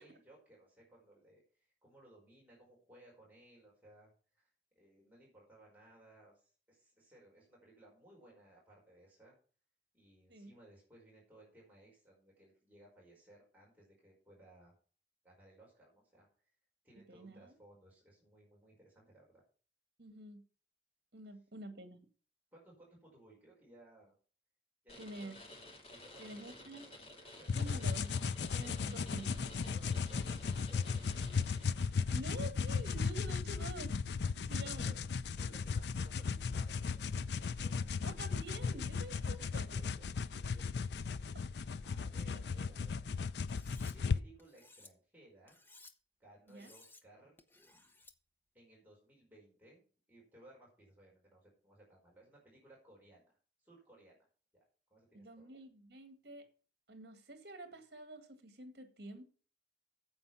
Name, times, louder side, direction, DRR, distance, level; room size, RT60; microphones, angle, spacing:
voice 1, 0.0-9.3 9.9-14.8 15.2-16.3 16.8-19.4 22.5-24.2 24.8-25.4 25.9-27.8 28.8-31.5 34.3-35.0 35.4-38.0 39.7-40.1 40.3-41.3 41.8-43.0 43.9-45.6 46.2-47.4 48.5-49.8 50.1-53.3 53.6-54.2 54.5-54.6 54.9-55.6, right 1 dB, 10° right, 4.9 m, -62 dB
voice 2, 17.1-17.5 20.0-20.4 21.1-22.0 25.0-25.4 26.2-26.9 27.5-28.1 28.5-29.4 32.1-33.9 34.5-35.0 38.0-39.6 42.2-42.4 46.5-46.7 55.1-56.5 56.9-59.2, right 2 dB, 65° right, 2.1 m, -48 dB
sound 1, 24.9-32.2, left 2 dB, 35° left, 2.3 m, -54 dB
sound 2, 27.5-44.2, left 5 dB, 75° left, 0.5 m, -36 dB
Cutlery silverware, 43.5-43.9 44.4-44.9 45.5-45.9 46.5-47.0 47.4-48.1, left 3 dB, 10° left, 0.8 m, -59 dB
9.5 x 7.7 x 5.7 m
head